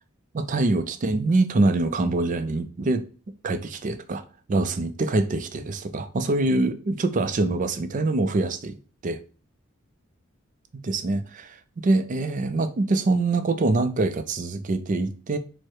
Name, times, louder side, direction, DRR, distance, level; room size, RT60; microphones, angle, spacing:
voice 1, 0.3-3.0 3.4-4.2 4.5-8.8 9.0-9.2 10.8-15.4, right 2 dB, 35° right, 0.4 m, -24 dB
4.6 x 2.1 x 4.4 m
head